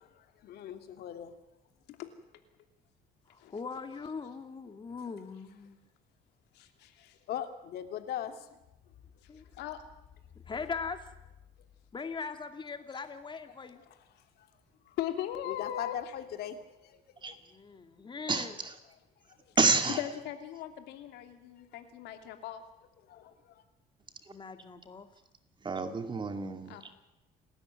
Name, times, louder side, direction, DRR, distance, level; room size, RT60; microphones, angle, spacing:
voice 1, 0.0-1.4 4.7-4.8 7.0-9.5 10.6-10.7 11.6-11.7 13.5-15.0 15.4-17.4 18.8-19.6 21.6-21.8 23.0-23.6, left 10 dB, 70° left, 7 dB, 2.4 m, -42 dB
voice 2, 3.3-5.8 9.3-9.4 10.5-11.1 11.9-13.8 17.4-18.6 24.3-25.1, left 5 dB, 30° left, 7 dB, 2.5 m, -40 dB
voice 3, 6.5-7.2 9.2-9.8 15.0-15.9 20.0-22.6 26.7-26.8, left 11 dB, 85° left, 6 dB, 2.9 m, -39 dB
voice 4, 18.3-18.7 19.6-20.0 24.2-24.3 25.6-26.8, right 4 dB, 30° right, 7 dB, 2.4 m, -29 dB
28.5 x 13.5 x 9.8 m, 0.91 s
cardioid pair, 110°, 17 cm